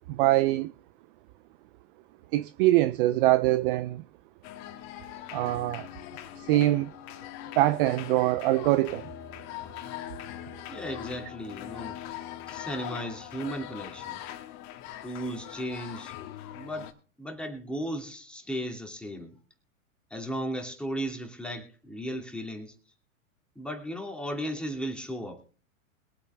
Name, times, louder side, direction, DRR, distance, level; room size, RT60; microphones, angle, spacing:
voice 1, 0.1-0.7 2.3-4.0 5.3-5.9 6.4-6.9 7.6-9.1, right 16 dB, 40° right, 0.5 m, -23 dB
sound 1, 4.4-16.9, left 12 dB, 40° left, 2.0 m, -41 dB
voice 2, 10.7-12.0 12.5-14.2 15.0-16.2 16.5-16.9 17.2-19.4 20.1-22.8 23.6-25.4, equal, ahead, 2.7 m, -35 dB
22.5 x 8.5 x 3.4 m
hypercardioid pair, 115°, 41 cm